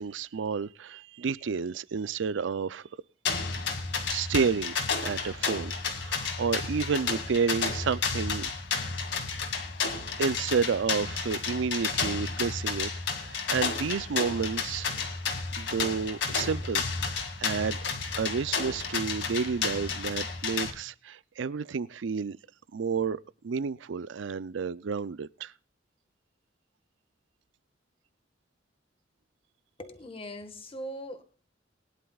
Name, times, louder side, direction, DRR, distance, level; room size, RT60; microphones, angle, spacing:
voice 1, 0.0-2.9 4.1-8.5 9.1-9.3 10.2-15.1 15.6-17.8 18.2-22.4 22.7-25.5, right 5 dB, 80° right, 0.5 m, -31 dB
sound 1, 3.3-20.7, left 5 dB, 70° left, 2.2 m, -32 dB
voice 2, 29.8-31.2, equal, 30° left, 1.5 m, -40 dB
21.0 x 11.0 x 2.4 m
head